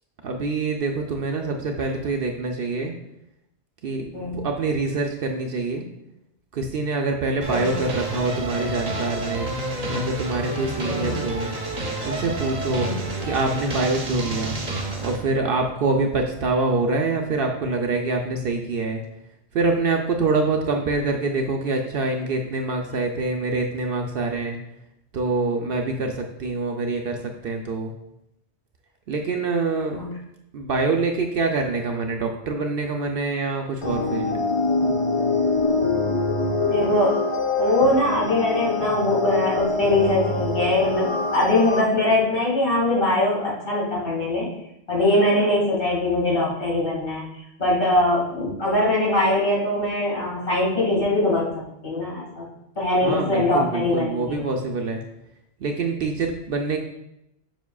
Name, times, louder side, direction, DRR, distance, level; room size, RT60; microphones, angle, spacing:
voice 1, 0.2-2.9 3.8-4.1 4.3-5.9 6.5-9.5 9.9-11.5 12.0-12.9 13.3-14.5 15.0-19.0 19.5-24.6 25.1-27.2 27.4-27.9 29.1-30.0 30.5-34.4 53.0-55.0 55.6-56.8, right 3 dB, 60° right, 3 dB, 0.7 m, -25 dB
sound 1, 7.4-15.2, right 1 dB, 35° right, 0.9 m, -29 dB
sound 2, 33.8-41.8, left 3 dB, 30° left, 0.6 m, -24 dB
voice 2, 36.7-37.1 37.6-44.5 44.9-47.2 47.6-51.5 51.8-52.4 52.8-54.4, left 1 dB, 50° left, -6 dB, 2.4 m, -22 dB
7.1 x 5.9 x 2.3 m, 0.83 s
omnidirectional pair, 1.2 m